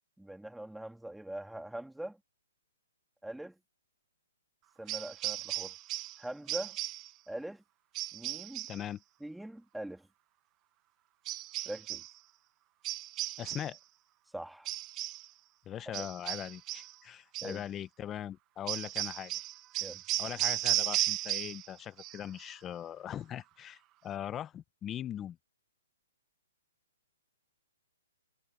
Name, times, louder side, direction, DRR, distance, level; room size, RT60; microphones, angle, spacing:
voice 1, 0.2-2.2 3.2-3.6 4.8-5.7 6.2-6.8 7.3-7.6 8.1-8.7 9.2-10.1 11.6-12.1 14.3-14.7 15.9-16.1 17.4-17.6 19.8-20.0, right 1 dB, ahead, 2.8 m, -42 dB
sound 1, 4.9-6.2 6.5-7.1 7.9-8.8 11.3-12.1 12.8-13.8 14.7-15.3 15.9-16.9 17.3-17.6 18.7-21.7 22.0-22.5, right 17 dB, 25° right, 0.9 m, -35 dB
voice 2, 8.7-9.0 13.4-13.8 15.7-19.4 20.2-25.4, left 10 dB, 15° left, 1.1 m, -40 dB
hypercardioid pair, 150°, 0 cm